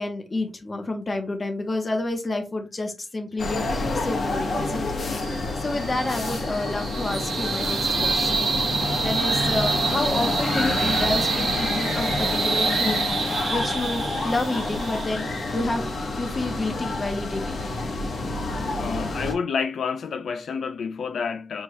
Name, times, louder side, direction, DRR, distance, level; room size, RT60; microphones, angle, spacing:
voice 1, 0.0-5.0 5.5-17.5, left 2 dB, 30° left, 0.7 m, -29 dB
sound 1, 3.4-19.4, left 2 dB, 65° left, 1.0 m, -28 dB
sound 2, 5.2-17.8, right 5 dB, 65° right, 0.8 m, -28 dB
voice 2, 18.8-21.6, left 6 dB, 85° left, 0.4 m, -29 dB
6.3 x 2.2 x 2.9 m
wide cardioid pair, 175°, 0 cm